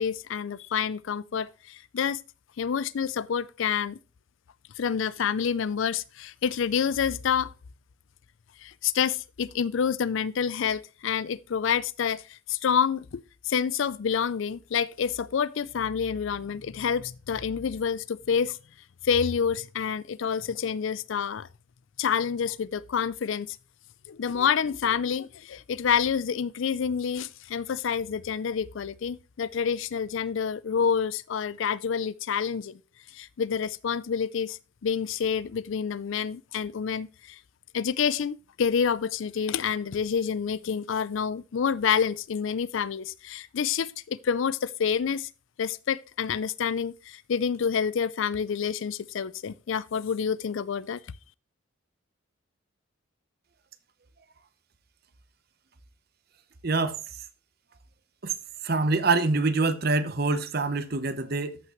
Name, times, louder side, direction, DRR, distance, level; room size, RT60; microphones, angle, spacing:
voice 1, 0.0-2.2 2.6-4.0 4.8-7.5 8.6-13.2 13.5-18.6 19.0-21.5 22.0-23.6 24.1-32.8 33.1-37.4 37.7-45.3 45.6-51.0, left 7 dB, 65° left, 0.4 m, -28 dB
voice 2, 56.6-57.0 58.2-58.3 58.6-61.6, right 3 dB, 45° right, 0.8 m, -25 dB
13.5 x 5.8 x 3.0 m
head